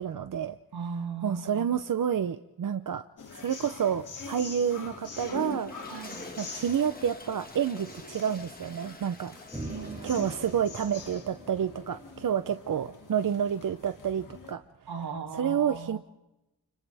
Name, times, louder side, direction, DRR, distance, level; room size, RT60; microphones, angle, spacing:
voice 1, 0.0-0.6 1.2-3.0 3.4-5.7 6.4-9.3 10.0-14.6 15.3-16.0, right 8 dB, 60° right, 9 dB, 0.8 m, -29 dB
voice 2, 0.7-1.6 5.9-6.2 9.7-10.2 14.9-16.0, right 5 dB, 80° right, 3 dB, 2.8 m, -37 dB
sound 1, 3.2-14.5, left 4 dB, 55° left, 2.9 m, -45 dB
Toilet flush, 5.0-10.8, left 2 dB, 25° left, 1.8 m, -44 dB
sound 2, 9.5-14.2, right 1 dB, 10° right, 7.0 m, -45 dB
29.5 x 29.5 x 3.5 m, 0.93 s
wide cardioid pair, 155°, 37 cm